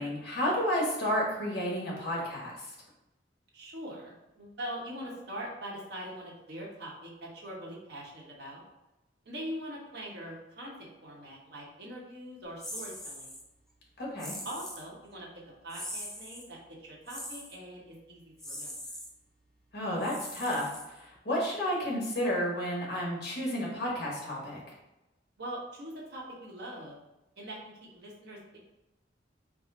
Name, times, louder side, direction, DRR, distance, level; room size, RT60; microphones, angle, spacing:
voice 1, 0.0-2.6 14.0-14.4 19.7-20.7 21.0-24.6, equal, 60° left, -3 dB, 1.3 m, -31 dB
voice 2, 3.5-8.6 9.2-13.4 14.4-15.3 15.6-18.7 25.4-27.0 27.4-28.6, equal, 60° right, -3 dB, 1.0 m, -42 dB
sound 1, 12.6-13.4 14.2-14.9 15.7-16.5 17.1-17.6 18.4-19.1 20.0-21.2, equal, 5° left, 0.4 m, -42 dB
4.8 x 2.1 x 3.8 m, 0.96 s
head